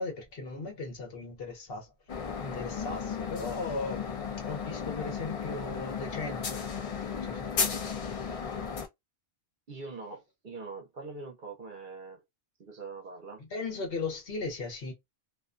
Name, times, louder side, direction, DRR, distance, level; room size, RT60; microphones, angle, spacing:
voice 1, 0.0-1.9 2.4-4.1 4.4-6.6 7.1-8.1 13.5-14.9, left 3 dB, 65° left, 1.0 m, -37 dB
sound 1, 2.1-8.9, left 6 dB, 50° left, 0.4 m, -34 dB
voice 2, 9.7-12.2 12.6-13.4, right 4 dB, 55° right, 0.8 m, -43 dB
2.4 x 2.2 x 2.4 m
omnidirectional pair, 1.1 m